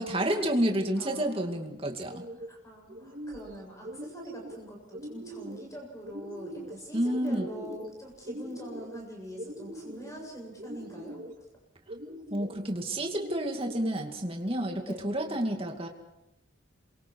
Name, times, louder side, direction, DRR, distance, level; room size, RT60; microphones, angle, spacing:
voice 1, 0.0-2.2 6.9-7.5 12.3-15.9, right 1 dB, 30° right, 3 dB, 2.4 m, -30 dB
voice 2, 0.9-1.7 2.4-11.4 14.9-15.0, equal, 15° left, 0 dB, 7.4 m, -44 dB
sound 1, 2.0-2.5 2.9-3.5 3.8-4.6 4.9-5.6 6.0-6.8 7.1-7.9 8.2-9.0 9.4-10.1 10.6-11.3 11.9-12.5 13.1-13.9, right 1 dB, 45° right, 2.3 m, -42 dB
27.5 x 23.5 x 4.8 m, 0.89 s
head